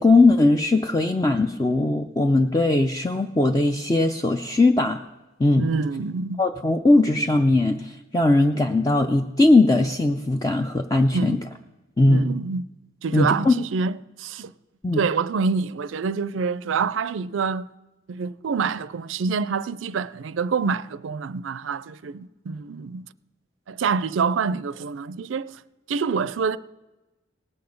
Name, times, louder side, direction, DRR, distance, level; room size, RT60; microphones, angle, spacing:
voice 1, 0.0-5.0 5.4-5.7 6.4-11.4 12.0-12.3 13.1-13.5 14.8-15.0, left 2 dB, 20° left, 0.4 m, -19 dB
voice 2, 5.6-6.4 11.1-11.4 12.1-12.6 13.0-14.5 14.9-17.7 18.1-23.1 23.7-25.6 25.9-26.6, right 5 dB, 80° right, 0.4 m, -26 dB
18.5 x 6.9 x 5.3 m
head